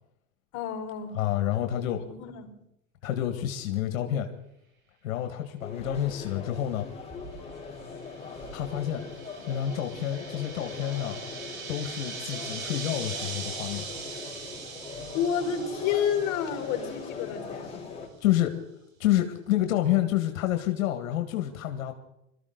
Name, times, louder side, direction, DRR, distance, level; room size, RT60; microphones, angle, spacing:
voice 1, 0.5-1.2 2.0-2.5 15.1-18.1, left 8 dB, 45° left, 4 dB, 4.4 m, -30 dB
voice 2, 1.2-2.0 3.0-4.3 5.0-6.9 8.5-9.0 9.5-11.2 11.7-13.9 18.2-18.6 19.0-21.9, left 12 dB, 85° left, 6 dB, 1.9 m, -28 dB
sound 1, 5.6-18.1, left 4 dB, 15° left, 4.0 m, -41 dB
sound 2, 7.6-17.4, right 5 dB, 85° right, 3.6 m, -41 dB
22.5 x 14.0 x 4.0 m, 0.79 s
supercardioid pair, 125°, 40 cm